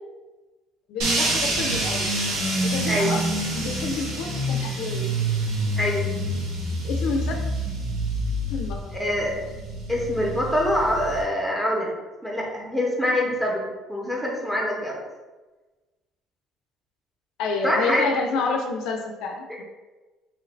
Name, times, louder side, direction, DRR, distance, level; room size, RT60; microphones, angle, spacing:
voice 1, 0.9-2.2 2.6-3.2 3.5-5.1 6.8-7.4 8.5-9.0 17.4-19.6, left 4 dB, 75° left, 3 dB, 0.4 m, -29 dB
sound 1, 1.0-11.2, right 1 dB, 80° right, 0.8 m, -27 dB
voice 2, 8.9-9.4 9.9-11.9 12.2-15.0 17.6-18.1 19.5-19.6, left 1 dB, 5° right, -2 dB, 0.7 m, -25 dB
2.8 x 2.5 x 3.1 m, 1.2 s
cardioid pair, 100°, 0 cm